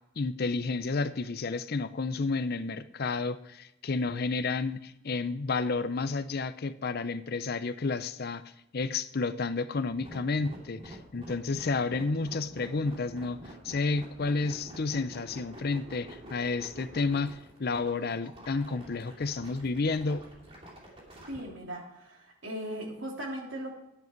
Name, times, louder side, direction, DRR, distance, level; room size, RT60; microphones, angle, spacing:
voice 1, 0.2-8.4 8.7-13.4 13.6-20.3, left 3 dB, 50° left, 13 dB, 0.6 m, -31 dB
sound 1, 9.8-21.4, right 1 dB, 30° right, 2.8 m, -47 dB
voice 2, 21.3-23.7, right 1 dB, 65° right, -1 dB, 3.2 m, -38 dB
10.5 x 9.8 x 4.5 m, 0.88 s
head